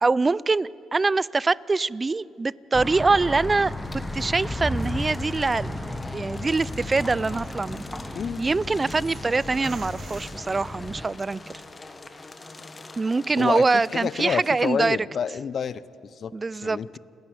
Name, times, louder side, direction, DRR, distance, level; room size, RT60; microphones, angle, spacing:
voice 1, 0.0-7.8 8.4-11.4 13.0-15.0 16.3-16.8, right 3 dB, 25° right, 22 dB, 0.4 m, -24 dB
sound 1, 2.7-11.1, left 1 dB, 10° left, 1.2 m, -34 dB
sound 2, 3.2-14.8, left 3 dB, 25° left, 1.4 m, -45 dB
sound 3, 5.0-11.2, right 4 dB, 50° right, 2.4 m, -48 dB
voice 2, 8.1-8.4 13.4-15.8 16.2-16.3 16.6-17.0, left 7 dB, 55° left, 17 dB, 0.7 m, -28 dB
29.0 x 10.5 x 9.6 m, 2.8 s
cardioid pair, 90°, 0 cm